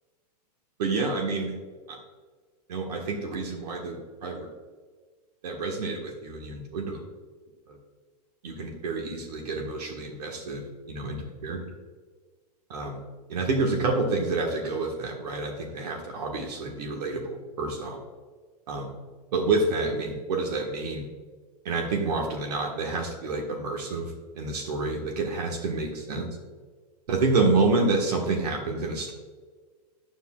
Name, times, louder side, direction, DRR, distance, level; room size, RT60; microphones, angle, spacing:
voice 1, 0.8-1.5 1.9-2.0 2.7-4.5 5.4-7.0 7.7-7.8 8.4-11.6 12.7-13.0 13.3-18.0 18.7-18.9 19.3-21.1 21.6-26.3 27.1-29.1, right 3 dB, 75° right, 2 dB, 1.5 m, -28 dB
9.9 x 8.1 x 2.4 m, 1.4 s
hypercardioid pair, 140°, 21 cm